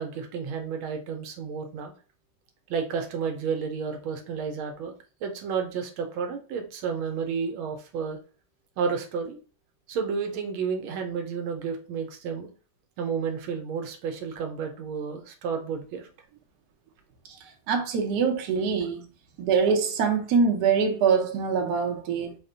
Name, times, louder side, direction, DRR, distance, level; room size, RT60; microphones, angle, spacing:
voice 1, 0.0-1.9 2.7-4.9 5.2-8.2 8.8-9.4 9.9-12.5 13.0-16.1, right 6 dB, 85° right, 1.5 m, -31 dB
voice 2, 17.4-19.0 19.4-22.4, right 5 dB, 65° right, 1.1 m, -24 dB
4.2 x 2.2 x 3.8 m
omnidirectional pair, 2.3 m